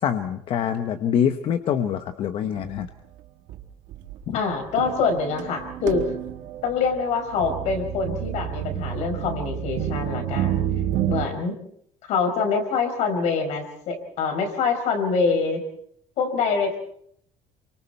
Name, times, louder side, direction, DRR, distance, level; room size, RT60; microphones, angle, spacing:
voice 1, 0.0-2.9 4.3-4.4, left 8 dB, 45° left, 8 dB, 1.0 m, -25 dB
sound 1, 2.6-2.9 3.5-3.6 3.9-11.3, right 11 dB, 80° right, 1.7 m, -30 dB
voice 2, 4.3-6.1 6.6-10.6 11.1-11.5 12.1-15.6 16.2-16.8, left 5 dB, 65° left, 6 dB, 5.1 m, -25 dB
28.5 x 24.5 x 4.5 m, 0.68 s
cardioid pair, 170°, 13 cm